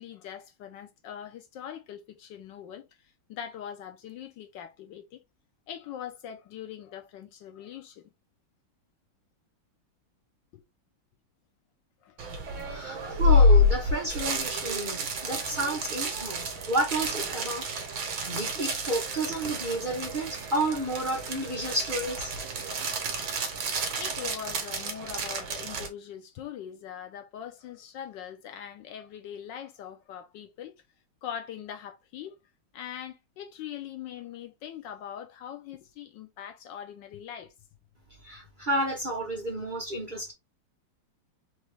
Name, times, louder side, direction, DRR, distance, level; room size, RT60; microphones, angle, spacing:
voice 1, 0.0-2.9 3.3-5.2 5.7-8.0 10.5-10.6 12.0-12.2 12.7-13.0 23.9-30.8 31.2-32.3 32.7-37.5, left 9 dB, 75° left, 1.2 m, -42 dB
sound 1, 12.2-25.9, left 2 dB, 70° right, 1.8 m, -28 dB
voice 2, 12.7-17.6 18.0-22.3 38.2-40.3, right 1 dB, 30° right, 1.0 m, -31 dB
4.0 x 3.2 x 3.3 m
omnidirectional pair, 2.2 m